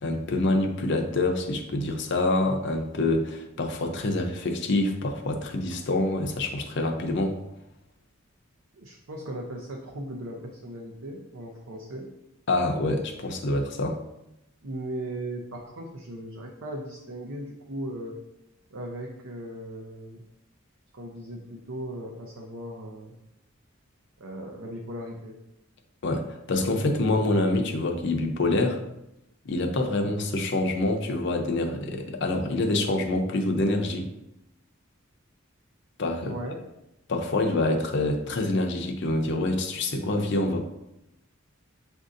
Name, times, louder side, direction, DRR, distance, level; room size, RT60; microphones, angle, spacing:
voice 1, 0.0-7.4 12.5-14.0 26.0-28.8 29.4-34.1 36.0-36.3 37.1-40.6, left 2 dB, 60° left, 3 dB, 0.6 m, -26 dB
voice 2, 8.7-12.1 14.6-18.2 18.7-20.2 20.9-23.1 24.2-25.4 36.2-36.6, right 1 dB, 80° right, -1 dB, 0.6 m, -37 dB
7.1 x 2.6 x 2.5 m, 0.87 s
head